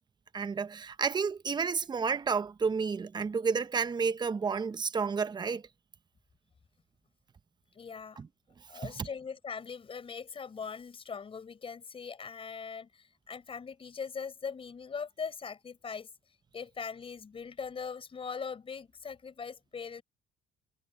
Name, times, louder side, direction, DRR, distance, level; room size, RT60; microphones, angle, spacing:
voice 1, 0.3-5.6 8.2-8.3 8.7-9.1, right 5 dB, 25° right, 0.9 m, -31 dB
voice 2, 7.7-8.2 8.7-16.1 16.5-20.0, left 6 dB, 35° left, 5.2 m, -41 dB
cardioid pair, 110°, 17 cm